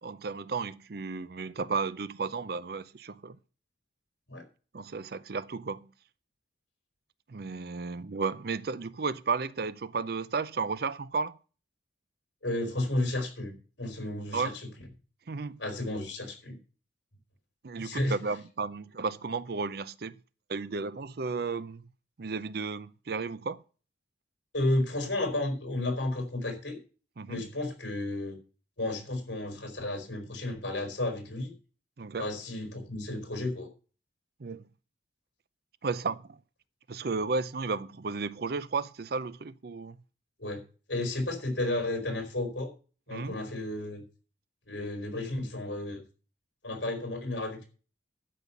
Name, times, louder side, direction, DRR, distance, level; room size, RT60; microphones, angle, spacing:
voice 1, 0.0-3.4 4.7-5.9 7.3-11.4 14.3-14.6 15.3-15.6 17.6-20.2 20.5-21.8 22.2-23.6 27.2-27.4 32.0-32.3 34.4-34.7 35.8-36.4 36.9-40.0 43.1-43.3, right 4 dB, 55° right, 0.5 m, -33 dB
voice 2, 12.4-14.5 15.6-16.6 17.8-18.2 24.5-26.8 27.3-28.4 28.8-31.5 32.2-33.7 40.4-40.6 40.9-42.7 43.1-44.0 44.7-46.0 46.6-47.7, left 1 dB, 70° left, 4.2 m, -32 dB
12.0 x 5.6 x 8.2 m
head